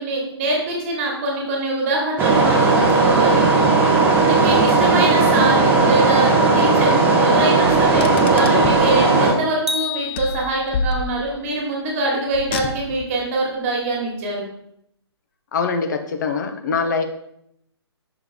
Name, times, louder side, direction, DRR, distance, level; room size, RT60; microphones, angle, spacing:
voice 1, 0.0-3.5 4.2-14.4, right 2 dB, 30° right, -1 dB, 1.7 m, -24 dB
sound 1, 2.2-9.3, right 3 dB, 15° right, 0.8 m, -16 dB
Car, 7.7-8.9 10.1-11.5 12.3-13.2, left 3 dB, 25° left, 0.3 m, -28 dB
sound 2, 9.7-11.1, left 4 dB, 80° right, 1.0 m, -29 dB
voice 2, 15.5-17.0, left 5 dB, 40° left, 7 dB, 0.7 m, -23 dB
5.8 x 4.5 x 3.7 m, 0.74 s
figure-of-eight pair, 130°, 14 cm